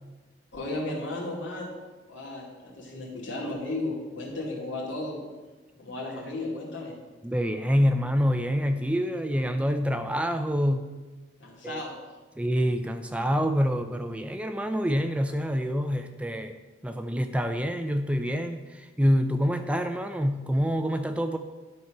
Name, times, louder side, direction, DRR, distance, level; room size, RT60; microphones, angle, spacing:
voice 1, 0.5-1.7 2.1-5.2 5.8-7.0 11.4-11.9, left 2 dB, 80° left, -3 dB, 2.4 m, -34 dB
voice 2, 7.2-10.9 11.6-11.8 12.4-16.5 16.8-21.4, equal, 5° right, 7 dB, 0.3 m, -26 dB
11.0 x 4.5 x 5.8 m, 1.2 s
head